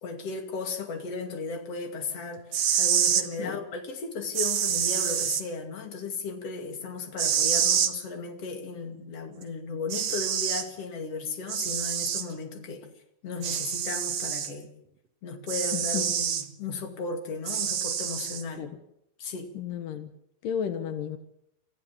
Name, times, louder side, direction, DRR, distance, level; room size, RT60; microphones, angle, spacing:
voice 1, 0.0-12.9 13.2-14.7 15.2-18.7 19.2-19.5, left 4 dB, 50° left, 4 dB, 3.4 m, -35 dB
sound 1, 2.4-3.3 4.3-5.4 7.2-7.9 9.4-9.5 9.9-10.7 11.5-12.3 13.4-14.5 15.5-16.4 17.5-18.4, right 8 dB, 55° right, 2.1 m, -27 dB
voice 2, 15.7-16.0 18.6-18.7 19.6-20.1 20.4-21.2, left 8 dB, 85° left, 8 dB, 3.0 m, -32 dB
26.5 x 15.0 x 7.3 m, 0.78 s
omnidirectional pair, 3.8 m